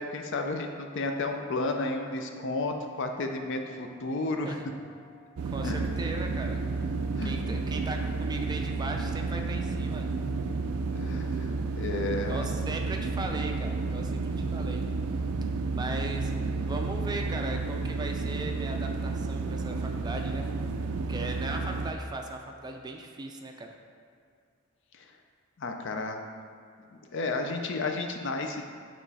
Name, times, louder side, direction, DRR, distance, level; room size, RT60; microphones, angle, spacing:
voice 1, 0.0-4.7 5.6-5.8 7.1-7.4 10.9-12.5 24.9-25.1 25.6-26.2 26.9-28.6, left 2 dB, 60° left, 4 dB, 0.5 m, -32 dB
sound 1, 3.1-10.7, left 4 dB, 35° left, 1.0 m, -59 dB
voice 2, 5.4-6.6 7.2-10.1 12.2-14.8 15.7-16.3 16.6-20.5 21.1-23.8, right 2 dB, 20° right, 3 dB, 0.3 m, -38 dB
sound 2, 5.4-21.9, right 3 dB, 85° right, 0.4 m, -31 dB
8.9 x 3.0 x 4.1 m, 2.3 s
head